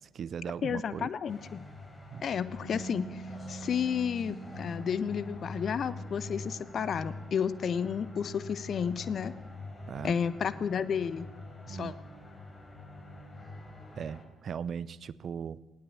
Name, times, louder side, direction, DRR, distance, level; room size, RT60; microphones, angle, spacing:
voice 1, 0.0-1.1 2.1-2.2 9.9-10.2 11.7-11.9 14.0-15.6, right 7 dB, 50° right, 20 dB, 0.7 m, -38 dB
voice 2, 0.6-1.6 2.2-3.2 3.5-9.3 10.0-11.3 11.7-11.9, left 7 dB, 50° left, 16 dB, 1.0 m, -32 dB
sound 1, 1.3-14.2, left 2 dB, 30° left, 4.5 m, -45 dB
Bass guitar, 2.5-8.8, right 4 dB, 10° right, 5.0 m, -47 dB
18.5 x 16.5 x 8.6 m, 1.1 s
figure-of-eight pair, 45°, 0 cm